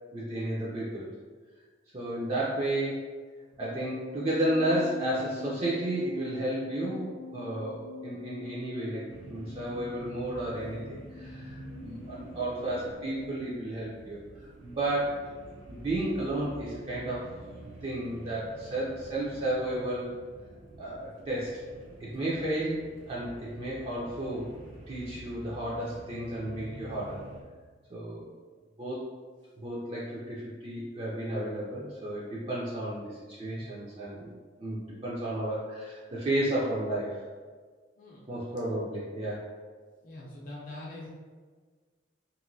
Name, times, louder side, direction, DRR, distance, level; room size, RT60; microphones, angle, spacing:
voice 1, 0.1-1.1 1.9-3.1 3.6-15.2 15.7-17.3 17.8-20.1 20.8-21.6 22.0-24.5 24.9-27.2 27.9-28.3 28.8-29.0 29.6-37.2 38.3-39.5, right 1 dB, 30° right, -7 dB, 0.4 m, -32 dB
sound 1, 3.6-13.3, left 2 dB, 70° right, 1.0 m, -44 dB
sound 2, 9.1-27.4, right 1 dB, 85° right, 0.6 m, -48 dB
voice 2, 38.0-38.3 40.0-41.1, left 2 dB, 45° left, -5 dB, 0.5 m, -43 dB
2.9 x 2.6 x 2.6 m, 1.5 s
head